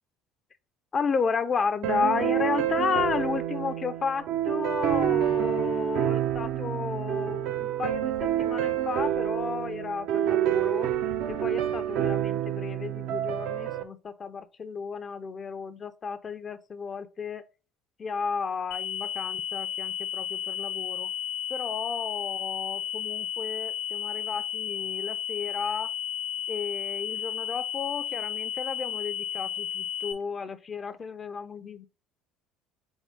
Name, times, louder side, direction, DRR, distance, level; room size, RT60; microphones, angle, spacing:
voice 1, 0.9-17.4 18.0-21.1 21.5-25.9 26.5-31.9, left 5 dB, 40° left, 0.4 m, -33 dB
sound 1, 1.8-13.8, right 11 dB, 70° right, 0.4 m, -28 dB
sound 2, 18.7-30.1, left 10 dB, 90° left, 0.8 m, -33 dB
3.6 x 3.6 x 3.5 m
hypercardioid pair, 65°, 0 cm